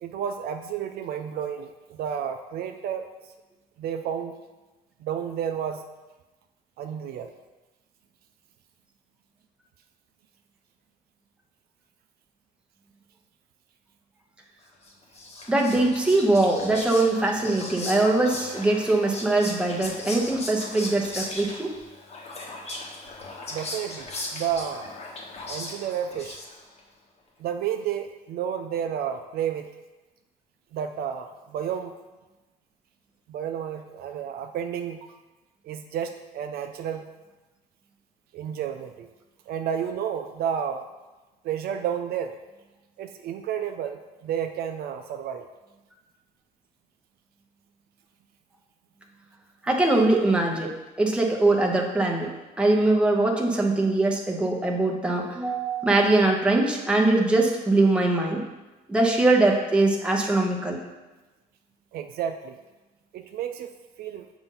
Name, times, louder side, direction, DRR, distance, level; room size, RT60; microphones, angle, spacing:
voice 1, 0.0-3.1 3.8-4.3 5.0-5.8 6.8-7.3 23.5-24.9 25.5-26.4 27.4-29.7 30.7-31.9 33.3-35.0 35.6-37.1 38.3-39.1 39.5-40.8 41.4-42.3 43.0-45.5 61.9-62.6 63.1-63.7 64.0-64.3, right 8 dB, 65° right, 6 dB, 0.4 m, -31 dB
Whispering, 14.8-26.8, left 2 dB, 40° left, 1.1 m, -38 dB
voice 2, 15.5-21.7 49.6-50.7 51.0-52.3 52.6-58.4 58.9-60.8, right 2 dB, 5° right, -1 dB, 0.9 m, -22 dB
7.1 x 2.6 x 5.4 m, 1.1 s
cardioid pair, 110°, 17 cm